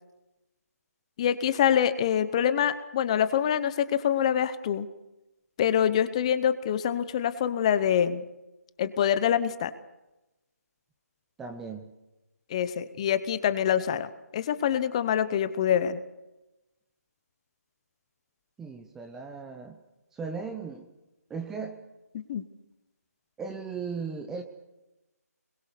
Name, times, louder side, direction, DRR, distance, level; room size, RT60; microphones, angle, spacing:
voice 1, 1.2-4.9 5.6-8.2 8.8-9.7 12.5-16.0 22.1-22.4, left 9 dB, 20° left, 14 dB, 0.9 m, -25 dB
voice 2, 11.4-11.9 18.6-19.8 20.1-20.9 21.3-21.8 23.4-24.4, right 5 dB, 5° right, 5 dB, 0.7 m, -37 dB
24.5 x 21.5 x 6.8 m, 0.98 s
figure-of-eight pair, 165°, 9 cm